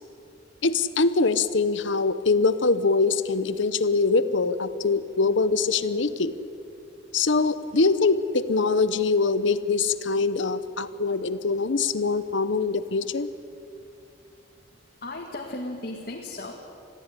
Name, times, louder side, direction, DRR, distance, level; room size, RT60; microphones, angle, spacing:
voice 1, 0.6-6.3 7.1-13.3, left 4 dB, 65° left, 14 dB, 0.9 m, -23 dB
voice 2, 15.0-16.5, left 2 dB, 45° left, -1 dB, 2.0 m, -35 dB
21.5 x 15.5 x 9.9 m, 2.6 s
head